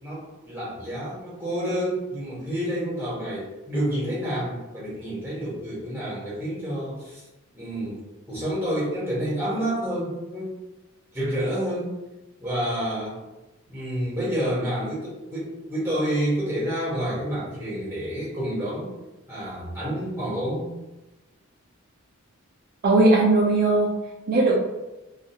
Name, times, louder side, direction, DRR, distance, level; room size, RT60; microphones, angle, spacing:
voice 1, 0.0-7.2 7.5-10.6 11.1-12.0 12.4-13.2 13.7-18.9 19.3-20.7, equal, 10° right, -8 dB, 1.2 m, -29 dB
voice 2, 22.8-23.9 24.3-24.6, right 2 dB, 45° right, -2 dB, 0.3 m, -18 dB
2.5 x 2.4 x 2.7 m, 1.0 s
head